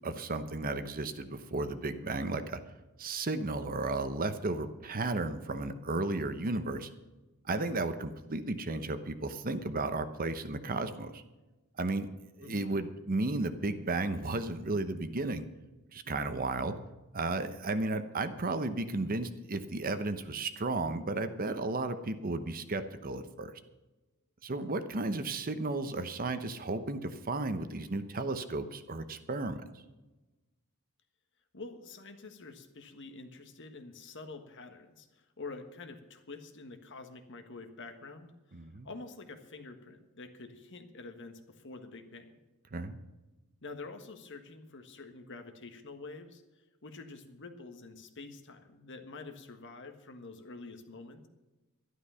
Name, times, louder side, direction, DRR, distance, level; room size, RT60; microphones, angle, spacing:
voice 1, 0.0-2.6 3.0-6.9 7.4-11.2 11.8-12.1 12.4-15.4 15.9-16.8 17.1-23.5 24.4-29.6 38.5-38.9 42.7-43.0, right 2 dB, 40° right, 10 dB, 0.9 m, -34 dB
voice 2, 12.4-12.8 31.5-42.3 43.6-46.4 46.8-51.3, left 3 dB, 55° left, 7 dB, 1.5 m, -47 dB
12.0 x 11.5 x 5.7 m, 1.1 s
head